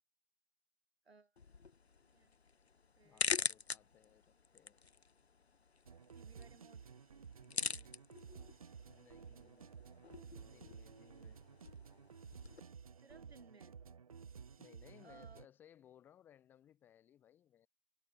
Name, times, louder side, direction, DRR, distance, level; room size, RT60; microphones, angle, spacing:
voice 1, 1.0-1.4 2.0-2.3 3.0-3.4 6.1-6.8 13.0-13.8 15.0-15.4, right 3 dB, 80° right, 3.1 m, -62 dB
sound 1, 1.4-12.6, left 5 dB, 90° left, 1.0 m, -44 dB
voice 2, 3.0-4.3 4.5-4.8 7.4-8.0 8.9-9.8 10.4-11.4 14.6-17.7, left 10 dB, 5° left, 1.8 m, -64 dB
sound 2, 5.8-15.5, right 6 dB, 35° right, 0.8 m, -54 dB
figure-of-eight pair, 160°, 31 cm